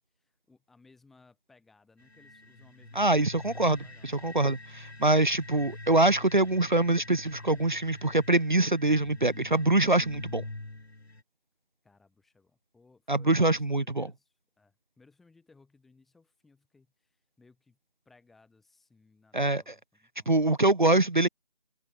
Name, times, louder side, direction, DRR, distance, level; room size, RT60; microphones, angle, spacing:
voice 1, 0.0-4.1 11.8-13.5 13.8-17.8 18.1-20.3, left 3 dB, ahead, 5.5 m, -62 dB
sound 1, 2.0-11.2, left 2 dB, 90° left, 4.3 m, -45 dB
voice 2, 3.0-3.8 4.2-10.4 13.1-14.1 19.3-19.7 20.3-21.3, right 2 dB, 50° right, 0.4 m, -24 dB
open air
figure-of-eight pair, 180°, 31 cm